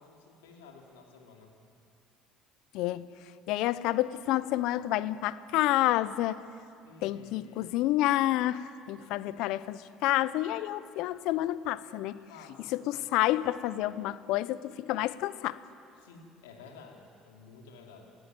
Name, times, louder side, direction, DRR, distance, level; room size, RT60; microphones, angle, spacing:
voice 1, 0.0-1.5 6.8-7.7 12.3-13.0 16.0-18.1, left 4 dB, 85° left, 2 dB, 3.1 m, -52 dB
voice 2, 2.7-3.1 3.5-6.4 7.0-12.2 12.7-15.6, left 15 dB, 70° left, 16 dB, 0.8 m, -29 dB
27.5 x 15.0 x 9.4 m, 2.4 s
hypercardioid pair, 70°, 0 cm